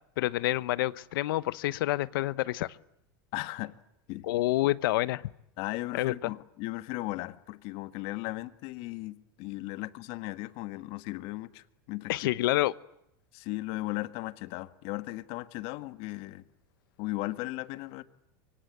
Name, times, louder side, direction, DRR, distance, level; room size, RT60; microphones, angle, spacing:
voice 1, 0.2-2.8 4.2-5.2 5.9-6.3 12.1-12.7, left 16 dB, 80° left, 1.0 m, -28 dB
voice 2, 3.3-3.7 4.1-4.3 5.6-12.3 13.3-16.4 17.0-18.0, left 19 dB, 55° left, 1.6 m, -36 dB
24.5 x 23.5 x 9.4 m
supercardioid pair, 125°, 11 cm